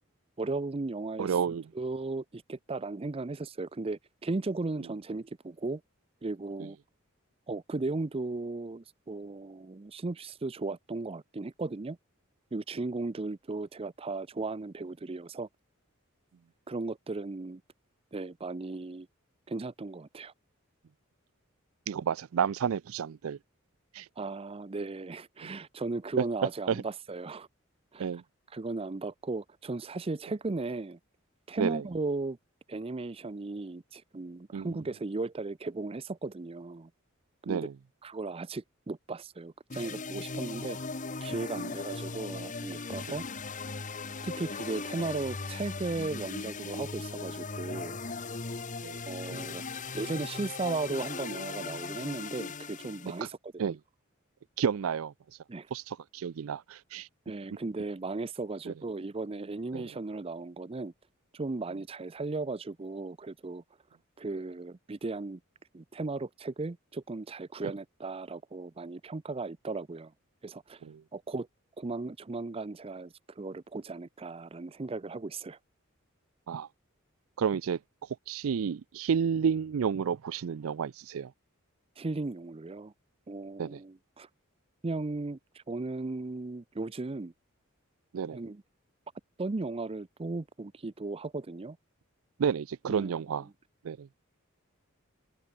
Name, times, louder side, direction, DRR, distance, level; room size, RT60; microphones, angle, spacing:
voice 1, 0.4-1.3 1.7-5.8 6.2-6.8 7.5-12.0 12.5-15.5 16.7-17.6 18.1-19.1 19.5-20.3 24.2-27.5 27.9-28.1 28.5-31.0 31.5-32.4 32.7-36.9 37.5-37.7 38.0-40.8 41.2-43.3 44.2-48.0 49.1-49.6 49.9-53.8 55.5-55.7 57.3-60.9 61.3-63.6 64.2-65.4 65.7-70.1 70.4-70.8 71.1-71.5 71.8-75.6 82.0-82.9 83.3-84.3 84.8-87.3 88.3-88.6 89.4-91.8 92.9-93.1, right 3 dB, 25° right, 0.5 m, -36 dB
voice 2, 1.2-1.6 6.6-6.7 21.9-23.4 23.9-24.1 25.4-25.5 26.7-26.8 28.0-28.2 31.6-31.8 34.5-34.8 37.5-37.7 48.8-49.0 53.6-53.8 54.6-55.1 55.7-57.1 58.7-58.8 59.7-59.8 70.8-71.0 76.5-76.7 77.4-77.8 78.3-81.3 83.6-83.8 88.1-88.4 92.4-93.5 93.8-94.1, right 7 dB, 80° right, 0.4 m, -31 dB
sound 1, 39.7-53.2, left 4 dB, 40° left, 1.4 m, -38 dB
head